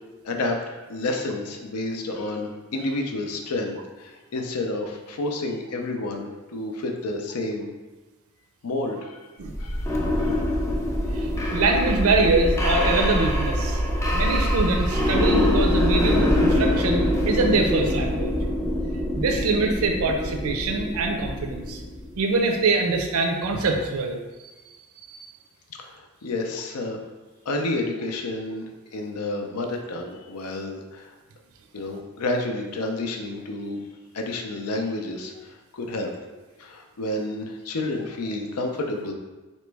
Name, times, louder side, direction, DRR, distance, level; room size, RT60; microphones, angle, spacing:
voice 1, 0.2-7.7 8.6-9.2 9.6-9.9 10.2-10.5 11.4-11.6 25.8-27.0 27.5-28.6 28.9-31.1 31.7-33.8 34.1-36.1 36.6-39.1, left 2 dB, 90° left, 3 dB, 0.5 m, -30 dB
sound 1, 9.5-22.2, left 1 dB, 10° left, 0.4 m, -24 dB
voice 2, 11.1-13.8 14.1-18.4 19.2-21.8 22.2-24.5 25.0-25.3, right 3 dB, 70° right, 3 dB, 0.4 m, -24 dB
4.1 x 3.0 x 3.4 m, 1.2 s
head